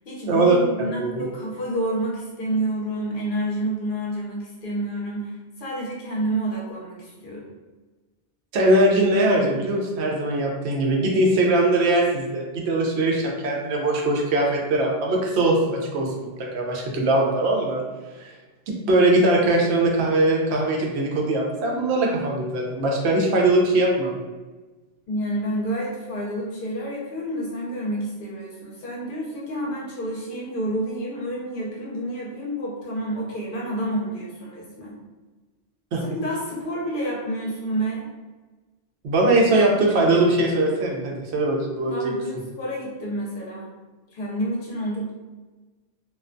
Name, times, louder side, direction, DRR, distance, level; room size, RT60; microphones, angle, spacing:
voice 1, 0.0-7.4 25.1-35.0 36.0-38.1 41.9-43.7 44.1-45.1, right 1 dB, 60° left, -4 dB, 0.7 m, -29 dB
voice 2, 8.5-17.8 18.2-18.3 18.7-24.2 35.9-36.0 39.0-42.1, right 2 dB, 85° right, 0 dB, 0.8 m, -21 dB
2.3 x 2.2 x 2.5 m, 1.2 s
omnidirectional pair, 1.1 m